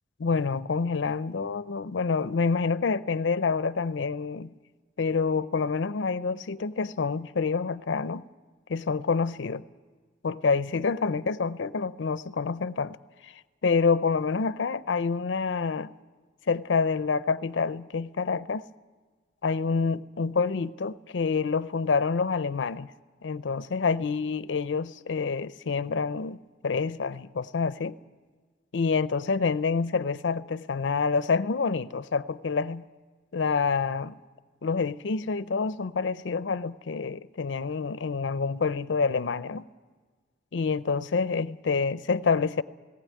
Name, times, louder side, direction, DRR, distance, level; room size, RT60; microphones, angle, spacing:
voice 1, 0.2-4.5 5.0-8.2 8.7-9.6 10.2-13.0 13.2-13.3 13.6-15.9 16.5-18.6 19.4-22.9 23.2-26.4 26.6-28.0 28.7-32.8 33.3-34.1 34.6-39.7 40.5-42.6, left 5 dB, 75° left, 0.5 m, -27 dB
19.0 x 17.5 x 9.4 m
head